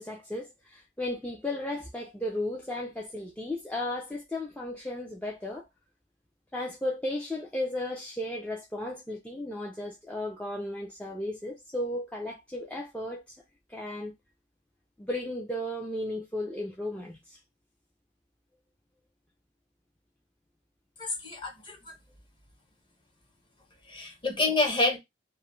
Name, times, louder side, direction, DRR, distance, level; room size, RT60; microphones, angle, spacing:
voice 1, 0.0-5.7 6.5-13.4 13.7-14.1 15.0-17.4, left 1 dB, 5° left, 0.4 m, -35 dB
voice 2, 21.0-21.9 23.9-25.0, left 2 dB, 25° left, 0.8 m, -28 dB
2.3 x 2.1 x 3.0 m
head